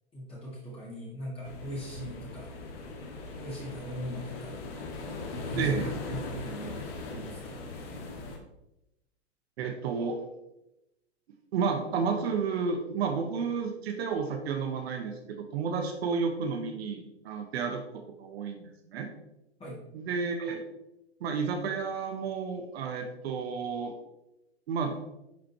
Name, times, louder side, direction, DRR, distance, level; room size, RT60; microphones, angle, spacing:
voice 1, 0.1-2.5 3.4-4.5 5.3-7.6 19.6-19.8, equal, 15° left, -6 dB, 2.2 m, -40 dB
sound 1, 1.4-8.4, left 3 dB, 55° left, 1.7 m, -39 dB
voice 2, 5.6-5.9 9.6-10.2 11.5-17.8 18.2-19.1 19.9-20.6 21.2-23.9 24.7-25.0, right 5 dB, 65° right, 4 dB, 1.2 m, -31 dB
10.5 x 5.1 x 2.9 m, 0.90 s
hypercardioid pair, 110°, 34 cm